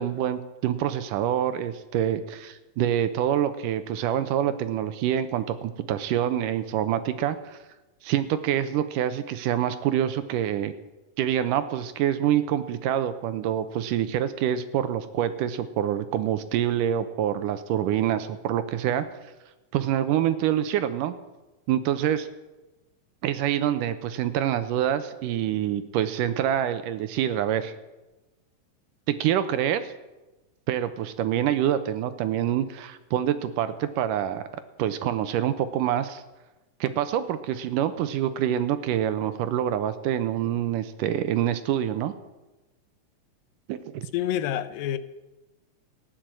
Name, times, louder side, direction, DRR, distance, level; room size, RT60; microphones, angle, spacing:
voice 1, 0.0-7.6 8.0-10.7 11.2-19.1 19.7-21.1 21.7-22.3 23.2-27.7 29.1-29.9 30.7-34.4 34.8-36.2 36.8-42.1 43.7-44.1, right 10 dB, 75° right, 12 dB, 2.3 m, -26 dB
voice 2, 44.1-45.0, left 11 dB, 80° left, 12 dB, 2.5 m, -27 dB
16.0 x 10.5 x 7.6 m, 1.1 s
omnidirectional pair, 4.0 m